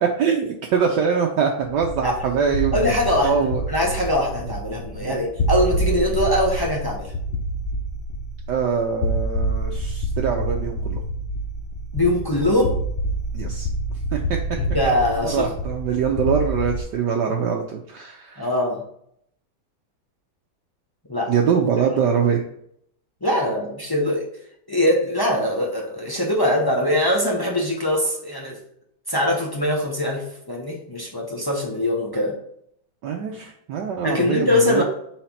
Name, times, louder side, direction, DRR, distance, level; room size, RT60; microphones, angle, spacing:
voice 1, 0.0-2.9 3.2-3.6 5.0-5.2 8.5-11.0 13.3-13.7 14.1-14.4 15.2-18.5 21.3-22.4 33.0-34.8, right 6 dB, 70° right, 1 dB, 1.2 m, -23 dB
sound 1, 1.7-16.8, right 1 dB, 75° left, 0.5 m, -27 dB
voice 2, 2.7-3.4 3.7-7.1 11.9-12.8 14.6-15.5 18.4-18.8 21.1-21.3 23.2-24.3 24.7-28.6 29.1-32.4 34.0-34.8, left 1 dB, 25° left, -2 dB, 0.5 m, -22 dB
5.0 x 4.4 x 5.6 m, 0.71 s
omnidirectional pair, 2.2 m